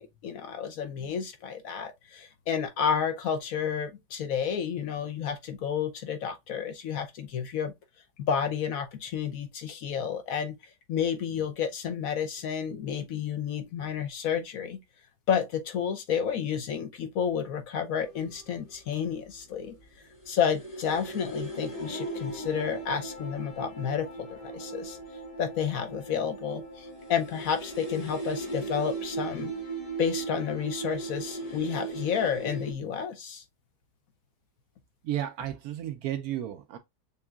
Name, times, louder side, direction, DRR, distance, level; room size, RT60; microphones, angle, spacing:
voice 1, 0.0-7.7 8.3-10.5 10.9-14.8 15.3-19.8 20.3-25.0 25.4-29.5 30.0-33.4, left 7 dB, 65° left, 1.0 m, -31 dB
sound 1, 18.0-18.7 19.2-19.3 19.7-32.7, right 3 dB, 20° left, 1.4 m, -38 dB
Dog, 21.7-23.6 24.3-25.1 27.3-28.2, equal, 30° right, 1.2 m, -43 dB
voice 2, 35.0-36.8, right 12 dB, 70° right, 0.9 m, -33 dB
6.9 x 2.7 x 2.3 m
omnidirectional pair, 1.9 m